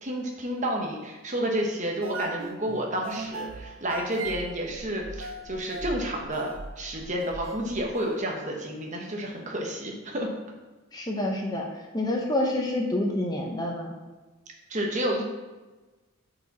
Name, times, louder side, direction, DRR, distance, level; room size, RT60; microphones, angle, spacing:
voice 1, 0.0-10.3 14.7-15.2, right 1 dB, 35° right, 0 dB, 1.1 m, -30 dB
sound 1, 2.0-8.2, right 2 dB, 65° right, 0.6 m, -39 dB
voice 2, 10.9-11.7 11.9-13.9, left 1 dB, 20° left, 0 dB, 0.8 m, -27 dB
7.9 x 5.0 x 4.1 m, 1.2 s
head